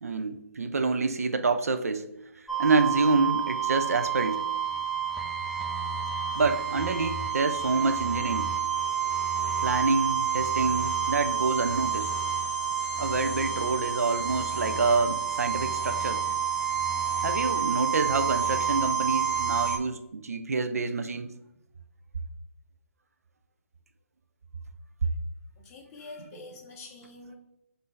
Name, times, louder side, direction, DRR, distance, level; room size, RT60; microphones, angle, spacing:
voice 1, 0.0-2.1 2.6-4.5 6.3-8.5 9.6-12.1 13.0-16.2 17.2-21.3, right 4 dB, 80° right, 0.5 m, -27 dB
sound 1, 2.5-19.8, right 8 dB, ahead, 0.3 m, -29 dB
voice 2, 25.6-27.3, left 3 dB, 25° left, 0.8 m, -46 dB
5.5 x 2.6 x 3.2 m
hypercardioid pair, 145°, 8 cm